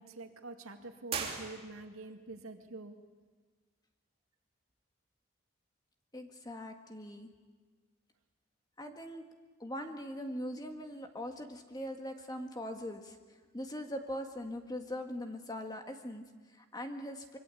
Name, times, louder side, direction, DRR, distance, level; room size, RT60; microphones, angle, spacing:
voice 1, 0.0-3.0, right 3 dB, 75° right, 5 dB, 2.2 m, -46 dB
sound 1, 1.0-2.1, right 5 dB, 25° right, 3.1 m, -39 dB
voice 2, 6.1-7.3 8.8-9.3 9.6-13.2 13.5-17.4, equal, 20° left, 5 dB, 1.7 m, -41 dB
25.5 x 23.0 x 8.5 m, 1.4 s
head